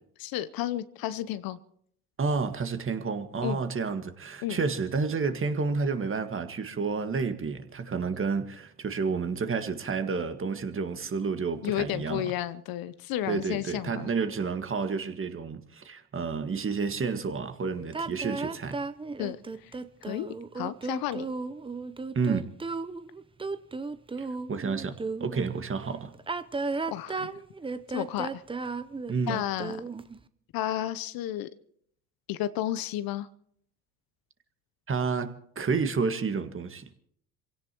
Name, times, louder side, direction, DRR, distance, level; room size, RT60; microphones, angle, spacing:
voice 1, 0.2-1.6 3.4-3.6 4.4-4.6 11.6-14.1 19.2-21.3 26.9-27.3 27.9-28.4 29.3-29.8 30.5-31.5 32.3-33.3, left 13 dB, 50° left, 0.9 m, -32 dB
voice 2, 2.2-12.3 13.3-18.8 22.2-22.5 24.2-26.1 29.1-29.4 34.9-36.9, right 5 dB, 30° right, 1.8 m, -30 dB
sound 1, 17.9-25.4 26.1-30.2, right 3 dB, 10° right, 0.8 m, -35 dB
27.5 x 17.0 x 3.0 m
hypercardioid pair, 65°, 44 cm